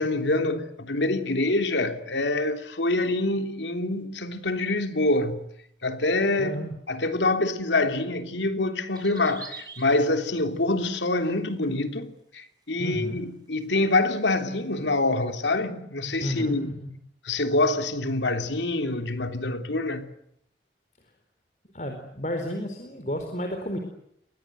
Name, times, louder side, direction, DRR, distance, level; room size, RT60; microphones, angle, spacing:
voice 1, 0.0-5.5 5.8-6.6 6.9-16.7 17.2-20.0, left 2 dB, 90° left, 3.2 m, -26 dB
voice 2, 6.4-6.7 12.8-13.2 16.2-16.9 21.7-23.8, equal, 40° left, 4.3 m, -32 dB
sound 1, 8.9-10.7 11.1-11.6 12.0-12.1 12.9-13.0 13.3-13.4 14.4-14.5, right 5 dB, 20° right, 6.4 m, -44 dB
30.0 x 23.5 x 8.0 m
head